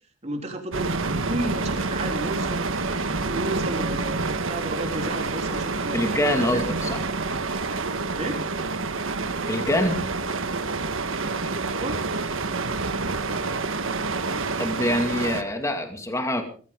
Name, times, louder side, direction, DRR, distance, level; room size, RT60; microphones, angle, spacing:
voice 1, 0.2-6.0 6.4-6.6 8.2-8.5 11.7-12.0, right 1 dB, 35° right, 3 dB, 3.7 m, -33 dB
sound 1, 0.7-15.4, right 3 dB, 90° right, 1.5 m, -28 dB
voice 2, 5.9-7.0 9.5-10.0 14.6-16.4, left 1 dB, 15° left, 5 dB, 2.3 m, -25 dB
21.0 x 15.5 x 3.8 m, 0.42 s
head